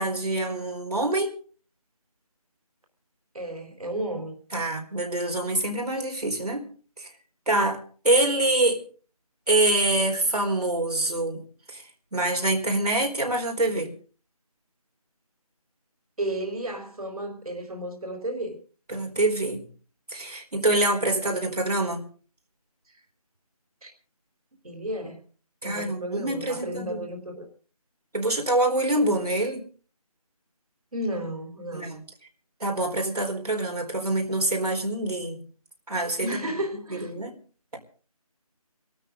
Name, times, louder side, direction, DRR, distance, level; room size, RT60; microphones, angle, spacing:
voice 1, 0.0-1.3 4.5-6.6 7.0-7.1 7.5-8.8 9.5-11.4 11.7-11.8 12.1-13.9 18.9-19.6 20.1-22.0 25.6-27.0 28.1-29.6 31.7-32.0 32.6-35.4 35.9-36.5 36.9-37.3, right 2 dB, 90° right, 4.2 m, -25 dB
voice 2, 3.3-4.3 16.2-18.6 23.8-23.9 24.6-25.2 25.6-27.5 30.9-32.0 36.2-37.1, right 1 dB, 70° right, 3.9 m, -33 dB
24.5 x 13.0 x 3.8 m
figure-of-eight pair, 175°, 19 cm